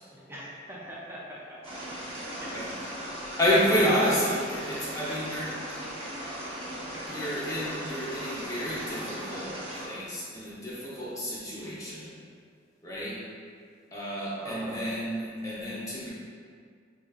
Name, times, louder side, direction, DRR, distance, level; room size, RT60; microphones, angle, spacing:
voice 1, 0.1-1.8 2.4-2.5 3.0-3.2 3.8-4.0 14.4-14.8, equal, 15° right, -5 dB, 0.4 m, -42 dB
sound 1, 1.6-9.9, right 1 dB, 35° right, 0.8 m, -38 dB
voice 2, 3.4-5.6 7.1-12.2 12.8-13.2 13.9-16.1, equal, 20° left, -8 dB, 0.8 m, -30 dB
3.5 x 2.9 x 2.3 m, 2.1 s
head